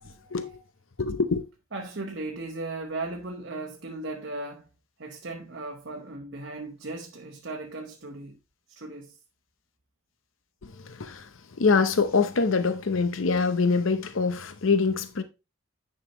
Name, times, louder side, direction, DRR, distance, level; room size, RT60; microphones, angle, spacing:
voice 1, 0.0-0.6 1.0-1.4 10.6-15.2, left 4 dB, 80° left, 0.7 m, -25 dB
voice 2, 1.7-4.7 5.0-8.4 8.7-9.2, right 2 dB, 60° right, 1.0 m, -37 dB
10.0 x 5.6 x 3.0 m
head